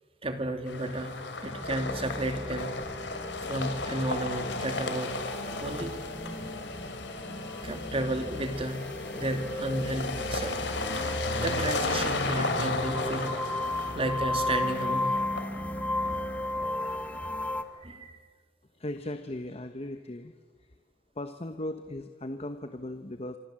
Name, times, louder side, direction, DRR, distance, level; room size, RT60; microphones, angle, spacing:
voice 1, 0.2-2.8 3.5-5.2 5.6-5.9 7.6-8.9 9.1-10.6 11.0-13.3 13.6-13.7 13.9-15.2 15.5-16.6 17.1-17.3 17.8-18.3, right 1 dB, 30° right, 7 dB, 2.6 m, -33 dB
sound 1, 0.7-17.6, left 2 dB, 65° left, 3.2 m, -34 dB
sound 2, 1.5-17.6, left 1 dB, 10° left, 1.0 m, -35 dB
voice 2, 18.8-20.3 21.2-23.4, left 1 dB, 30° left, 8 dB, 1.1 m, -37 dB
27.0 x 25.5 x 7.6 m, 1.5 s
head